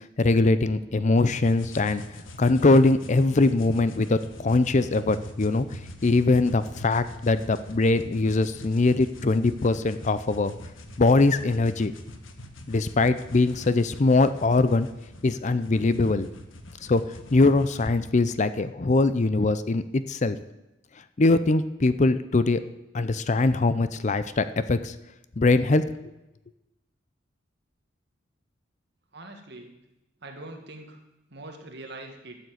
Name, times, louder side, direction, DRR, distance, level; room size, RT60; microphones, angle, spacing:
voice 1, 0.2-2.0 2.4-5.6 6.0-10.5 11.0-11.9 12.7-14.9 15.2-16.3 16.9-17.0 17.3-20.4 21.2-22.6 22.9-24.9 25.4-25.8, left 3 dB, 35° left, 13 dB, 0.5 m, -22 dB
sound 1, 1.2-18.0, left 1 dB, 85° left, 1.3 m, -43 dB
voice 2, 29.1-29.7 30.2-31.0 31.3-32.4, right 2 dB, 60° right, 3 dB, 2.0 m, -42 dB
12.5 x 7.3 x 7.9 m, 0.96 s
head